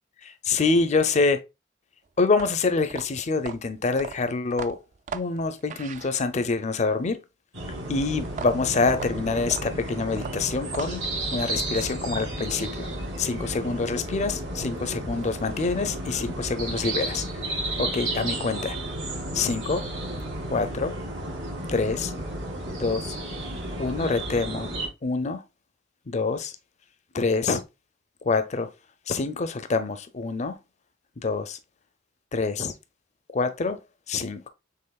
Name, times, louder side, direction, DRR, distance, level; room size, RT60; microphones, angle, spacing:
voice 1, 0.4-1.4 2.2-4.8 5.1-7.2 7.9-11.0 11.3-12.9 13.2-17.2 17.8-18.8 19.3-19.9 20.5-20.9 21.7-22.1 22.8-23.1 23.8-24.7 25.0-25.4 26.1-26.5 27.1-27.6 28.2-28.7 29.1-30.6 31.2-31.6 32.3-32.7 33.3-33.8 34.1-34.5, left 4 dB, 40° left, 0.5 m, -26 dB
sound 1, 2.3-6.6 8.2-11.2, right 6 dB, 45° right, 0.3 m, -39 dB
sound 2, 7.5-24.9, right 1 dB, 90° right, 2.6 m, -33 dB
5.6 x 3.5 x 2.3 m
head